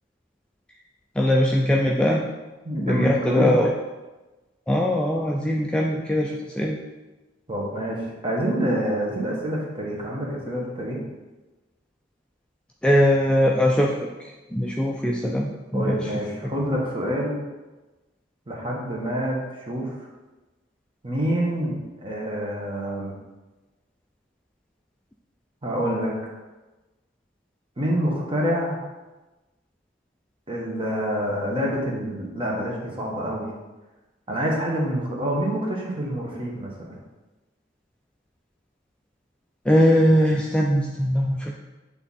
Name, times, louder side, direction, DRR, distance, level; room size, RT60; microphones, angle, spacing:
voice 1, 1.2-2.3 2.7-3.7 4.7-6.8 12.8-16.1 39.7-41.6, equal, 5° left, -1 dB, 0.4 m, -21 dB
voice 2, 2.6-3.6 7.5-11.0 15.7-17.4 18.5-19.9 21.0-23.1 25.6-26.3 27.8-28.8 30.5-33.5 34.3-37.0, equal, 25° right, -2 dB, 1.2 m, -27 dB
7.9 x 3.6 x 4.1 m, 1.2 s
head